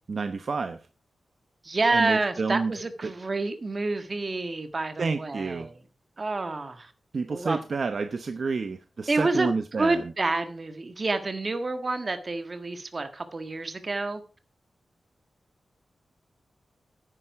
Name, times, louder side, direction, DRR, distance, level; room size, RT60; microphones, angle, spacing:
voice 1, 0.1-0.8 1.9-2.7 3.0-3.1 5.0-5.7 7.1-10.1, right 4 dB, 55° right, 0.8 m, -29 dB
voice 2, 1.6-5.7 6.2-6.9 7.3-7.6 9.1-9.5 9.8-14.2, right 3 dB, 35° right, 1.6 m, -28 dB
10.0 x 9.9 x 4.7 m
wide cardioid pair, 110°, 0 cm